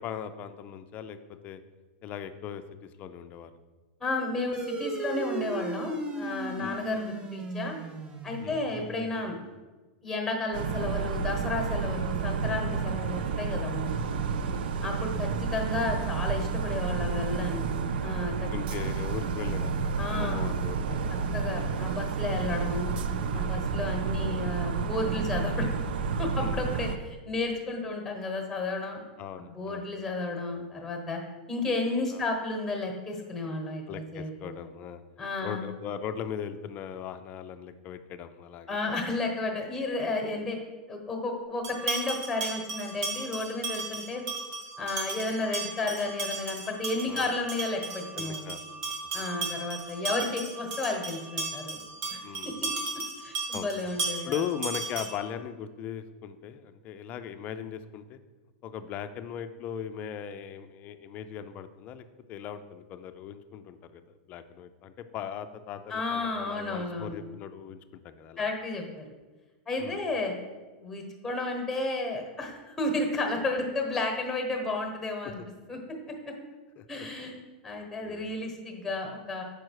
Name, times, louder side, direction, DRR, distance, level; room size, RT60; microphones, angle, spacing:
voice 1, 0.0-1.6 2.0-3.5 6.6-6.9 8.4-8.6 14.0-14.7 18.5-21.3 21.5-21.8 26.3-26.6 29.2-29.9 32.1-32.2 33.9-35.0 35.4-38.8 39.0-39.1 47.1-47.3 48.1-48.8 49.1-49.3 52.2-52.8 53.5-53.7 54.2-58.2 58.6-68.5 69.8-70.0 75.2-75.3 76.8-77.1 78.0-78.3, left 8 dB, 30° left, 9 dB, 0.4 m, -39 dB
voice 2, 4.0-7.7 8.2-9.4 10.0-14.1 14.8-17.6 18.0-18.5 20.0-20.5 21.3-22.9 23.3-25.7 26.2-29.0 29.5-31.2 31.5-34.6 35.2-35.6 38.7-40.6 40.9-44.2 44.8-48.5 49.1-51.8 52.1-52.2 52.4-52.7 53.2-54.3 65.9-67.2 68.4-69.0 69.7-70.3 70.8-75.4 75.7-75.8 76.2-76.3 76.9-77.3 77.6-79.4, left 2 dB, 5° left, 2 dB, 1.2 m, -32 dB
sound 1, 4.5-9.4, right 3 dB, 20° right, 0.5 m, -36 dB
sound 2, 10.5-27.0, right 5 dB, 80° right, 0.4 m, -30 dB
sound 3, 41.6-55.3, right 3 dB, 50° right, 1.6 m, -35 dB
6.2 x 4.8 x 4.7 m, 1.2 s
supercardioid pair, 150°, 5 cm